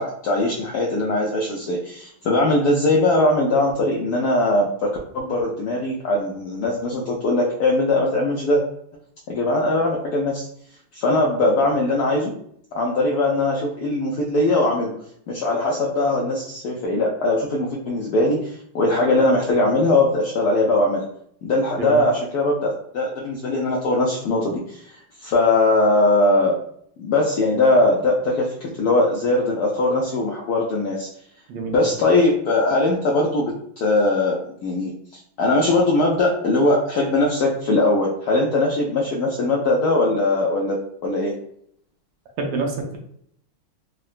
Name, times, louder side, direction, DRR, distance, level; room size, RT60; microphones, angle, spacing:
voice 1, 0.0-4.9 5.1-8.6 9.3-10.5 10.9-12.3 12.7-14.9 15.3-21.0 21.4-26.6 27.0-31.1 31.7-40.8 41.0-41.3, left 2 dB, 85° left, -2 dB, 0.8 m, -20 dB
voice 2, 42.4-43.0, right 3 dB, 80° right, 1 dB, 1.4 m, -27 dB
3.7 x 2.1 x 2.4 m, 0.69 s
omnidirectional pair, 2.3 m